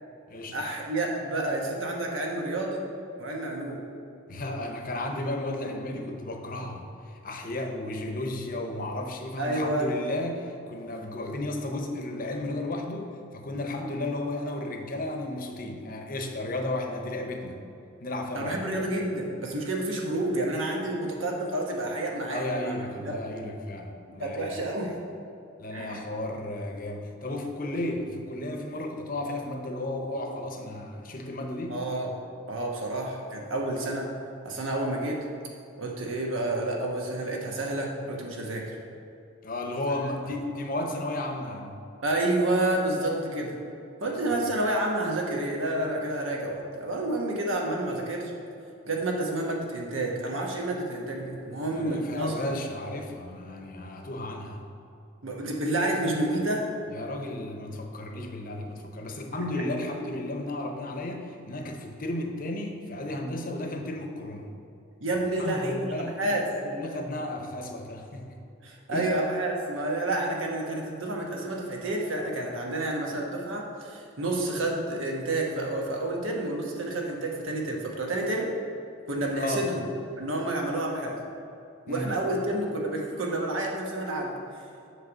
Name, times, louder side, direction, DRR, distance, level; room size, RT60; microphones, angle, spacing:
voice 1, 0.5-2.8 3.2-3.8 9.4-9.9 18.3-22.7 23.0-23.2 24.1-25.0 25.7-26.0 31.7-32.1 32.5-34.1 34.4-35.3 35.8-38.7 42.0-43.6 44.0-48.3 48.8-52.6 55.2-56.7 65.0-66.4 68.6-78.5 79.1-79.9 80.2-81.2 81.8-84.3, right 1 dB, 85° right, -1 dB, 1.2 m, -29 dB
voice 2, 4.3-17.6 18.0-18.6 22.1-24.6 25.6-31.8 39.4-41.8 44.1-44.2 51.7-54.6 56.9-64.5 65.4-68.4 68.9-69.1 79.4-79.7 81.9-82.2, left 1 dB, 45° left, 3 dB, 0.7 m, -34 dB
7.8 x 3.3 x 6.2 m, 2.7 s
head